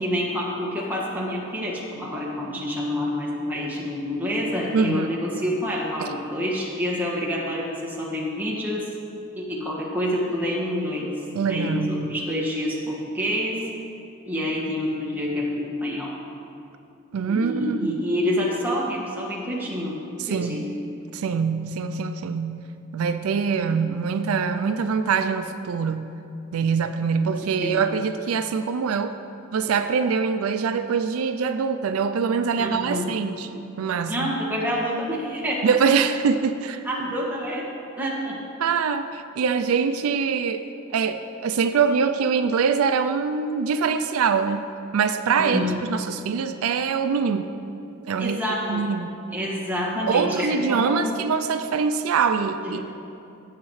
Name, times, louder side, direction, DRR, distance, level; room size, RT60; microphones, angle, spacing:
voice 1, 0.0-8.9 9.3-11.1 11.5-13.6 14.2-16.1 17.3-20.0 20.3-20.7 23.6-23.9 27.6-27.8 32.6-33.1 34.1-35.9 36.8-37.7 38.0-38.4 45.4-45.8 48.2-48.9 49.3-51.1 52.6-52.8, left 1 dB, 10° right, -5 dB, 1.7 m, -27 dB
voice 2, 4.7-5.1 11.3-12.2 17.1-18.0 20.2-20.6 21.1-22.6 22.9-26.1 26.5-29.2 29.5-33.5 33.8-34.3 35.6-36.8 38.6-40.6 40.9-44.6 44.9-47.5 48.1-48.4 48.7-49.1 50.1-52.8, right 5 dB, 80° right, 9 dB, 0.4 m, -24 dB
17.0 x 7.3 x 3.2 m, 2.7 s
head